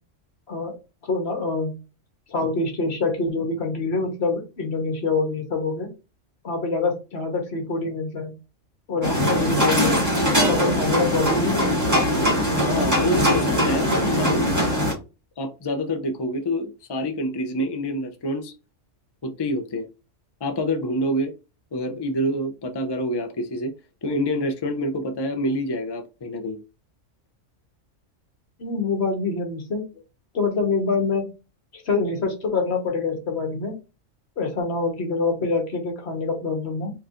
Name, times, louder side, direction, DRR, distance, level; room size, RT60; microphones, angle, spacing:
voice 1, 1.0-1.7 2.3-5.9 6.4-8.3 8.9-10.0 10.5-12.2 28.6-29.8 30.3-31.3 31.7-33.7 34.4-36.9, left 3 dB, 60° left, 1.5 m, -25 dB
sound 1, 9.0-14.9, equal, 15° right, 1.7 m, -21 dB
voice 2, 12.7-14.4 15.4-18.5 19.2-19.9 20.4-21.3 21.7-23.7 24.0-26.6, equal, 35° left, 0.4 m, -27 dB
4.5 x 3.1 x 2.5 m
omnidirectional pair, 1.3 m